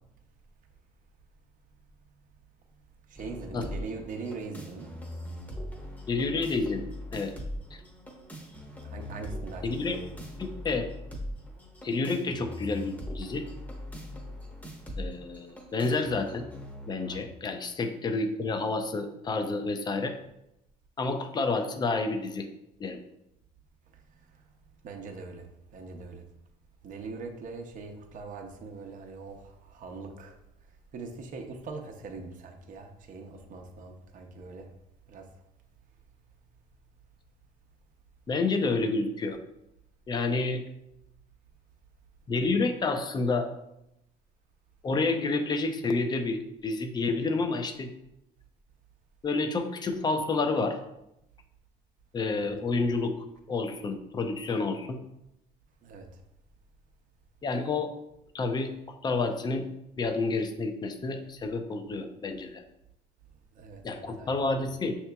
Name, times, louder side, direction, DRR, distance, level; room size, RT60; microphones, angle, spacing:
voice 1, 3.1-4.9 8.8-10.1 17.1-17.3 24.8-25.5 25.7-26.2 26.8-30.4 30.9-34.7 35.1-35.3 52.4-52.5 55.8-56.2 63.5-64.4, right 4 dB, 50° right, 3 dB, 0.6 m, -42 dB
sound 1, 3.2-17.2, equal, 10° left, 0.8 m, -41 dB
voice 2, 6.1-7.3 9.6-10.0 10.4-10.9 11.8-13.4 15.0-16.5 16.9-20.1 21.0-22.5 22.8-23.0 38.3-39.4 40.1-40.6 42.3-43.5 44.8-47.9 49.2-50.8 52.1-55.0 57.4-57.9 58.3-58.7 59.0-59.7 60.0-62.6 63.8-64.9, left 3 dB, 25° left, 7 dB, 0.5 m, -29 dB
6.1 x 2.9 x 2.2 m, 0.84 s
cardioid pair, 110°, 17 cm